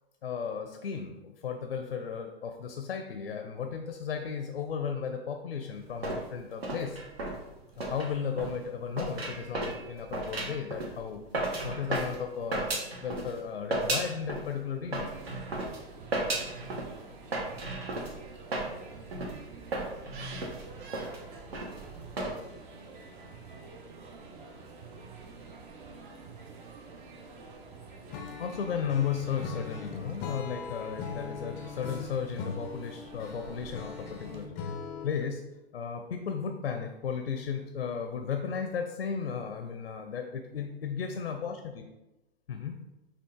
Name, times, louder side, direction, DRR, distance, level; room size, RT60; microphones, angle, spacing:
voice 1, 0.2-7.0 7.7-11.2 11.6-15.1 28.4-34.6 35.0-35.4 35.7-41.8 42.5-42.8, left 7 dB, 80° left, 5 dB, 0.5 m, -35 dB
sound 1, 5.8-13.4 13.7-14.5 14.9-22.4, right 2 dB, 75° right, 1.1 m, -35 dB
sound 2, 15.1-34.4, right 4 dB, 50° right, 0.8 m, -48 dB
Acoustic guitar / Strum, 28.1-35.3, left 5 dB, 25° left, 0.4 m, -40 dB
5.6 x 2.4 x 3.6 m, 1.0 s
figure-of-eight pair, 105°, 31 cm